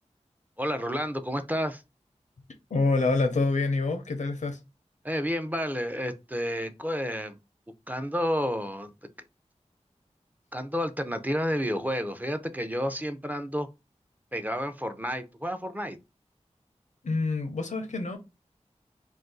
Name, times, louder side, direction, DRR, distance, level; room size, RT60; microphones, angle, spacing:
voice 1, 0.6-1.8 5.0-7.4 7.9-8.9 10.5-13.7 14.3-16.0, equal, 15° right, 0.4 m, -30 dB
voice 2, 2.7-4.6 17.0-18.2, left 3 dB, 90° left, 0.6 m, -26 dB
2.5 x 2.3 x 3.6 m
wide cardioid pair, 65°, 12 cm